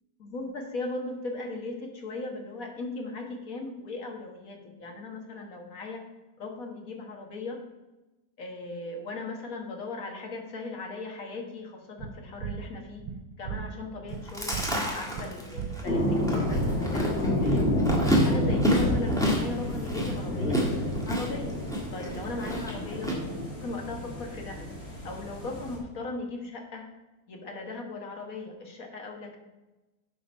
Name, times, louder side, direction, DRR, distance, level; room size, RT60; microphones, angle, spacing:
voice 1, 0.2-6.0 6.4-7.6 8.4-13.1 13.4-17.7 18.1-21.5 21.9-23.1 23.5-24.7 25.0-26.9 27.3-29.4, left 3 dB, 50° left, 2 dB, 1.7 m, -38 dB
sound 1, 12.0-18.3, right 7 dB, 80° right, 1.4 m, -38 dB
Chewing mastication, 14.1-23.1, equal, ahead, 1.6 m, -30 dB
sound 2, 15.9-25.8, left 1 dB, 35° left, 2.3 m, -29 dB
11.0 x 4.4 x 5.3 m, 1.1 s
omnidirectional pair, 1.9 m